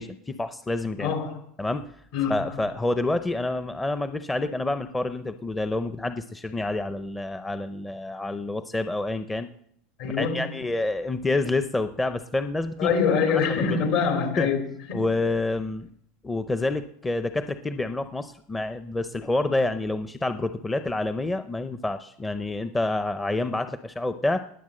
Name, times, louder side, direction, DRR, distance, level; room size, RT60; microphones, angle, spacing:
voice 1, 0.0-1.1 1.6-1.9 2.3-9.5 10.0-12.9 13.6-13.8 14.4-14.5 14.9-15.9 16.2-24.4, left 2 dB, 10° left, 10 dB, 0.6 m, -28 dB
voice 2, 1.0-1.4 2.1-2.6 10.0-10.5 12.8-15.0, left 6 dB, 65° left, 5 dB, 3.2 m, -25 dB
19.5 x 7.2 x 7.6 m, 0.69 s
supercardioid pair, 145°, 0 cm